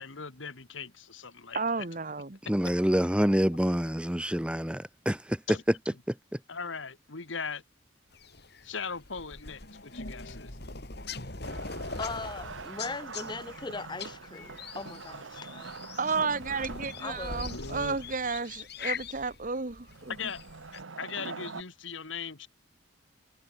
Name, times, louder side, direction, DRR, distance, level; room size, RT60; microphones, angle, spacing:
voice 1, 0.0-1.9 5.5-5.6 6.5-7.6 8.6-10.6 17.5-18.0 20.1-20.4 20.7-22.5, left 5 dB, 80° left, 1.9 m, -39 dB
voice 2, 1.5-2.4 16.0-20.1, right 4 dB, 45° right, 1.4 m, -32 dB
voice 3, 2.4-5.4 6.1-6.4, equal, 5° right, 1.4 m, -27 dB
sound 1, 8.1-20.8, left 4 dB, 55° left, 4.6 m, -42 dB
Wood, 11.4-18.2 19.9-21.6, right 4 dB, 80° right, 1.3 m, -44 dB
voice 4, 12.0-15.9 17.0-17.5, left 3 dB, 25° left, 0.8 m, -39 dB
head